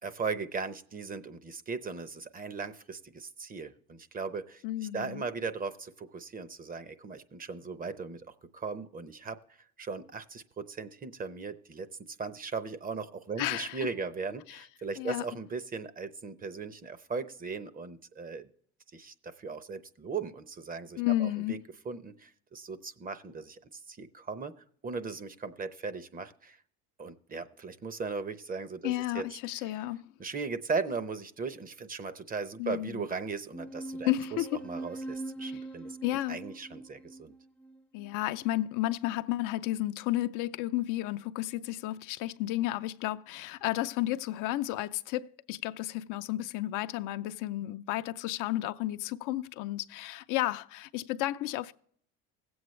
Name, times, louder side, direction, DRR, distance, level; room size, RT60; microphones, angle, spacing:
voice 1, 0.0-4.6 4.9-8.3 8.5-9.4 9.8-18.4 18.9-21.6 21.8-24.5 24.8-26.6 27.0-29.2 29.6-29.7 30.2-34.1 34.6-36.0 36.3-37.3, right 4 dB, 25° right, 0.7 m, -38 dB
voice 2, 4.6-5.2 13.4-13.9 14.5-14.6 15.0-15.3 21.0-21.6 28.8-30.1 32.6-33.1 34.0-34.6 35.4-35.6 36.0-36.4 37.9-51.7, left 15 dB, 65° left, 0.6 m, -32 dB
sound 1, 33.5-38.5, right 2 dB, 5° left, 0.4 m, -42 dB
17.0 x 7.9 x 3.1 m
supercardioid pair, 100°, 34 cm